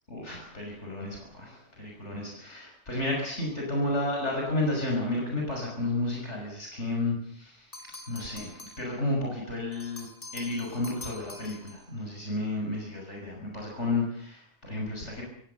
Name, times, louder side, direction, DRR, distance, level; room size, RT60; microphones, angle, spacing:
voice 1, 0.1-7.8 8.1-15.2, left 2 dB, 75° left, -1 dB, 6.2 m, -32 dB
sound 1, 7.7-9.0 9.7-11.9, left 2 dB, 50° left, 4.6 m, -46 dB
29.0 x 17.0 x 6.9 m, 0.66 s
omnidirectional pair, 1.2 m